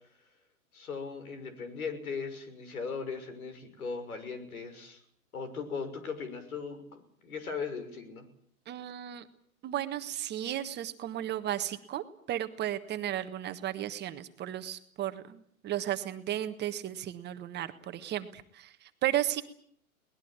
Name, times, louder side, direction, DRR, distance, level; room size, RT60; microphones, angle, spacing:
voice 1, 0.7-5.0 5.3-8.3, left 5 dB, 75° left, 11 dB, 6.0 m, -38 dB
voice 2, 8.7-9.2 9.6-19.4, right 12 dB, 25° right, 8 dB, 1.4 m, -34 dB
22.5 x 19.5 x 8.9 m, 0.64 s
hypercardioid pair, 120°, 43 cm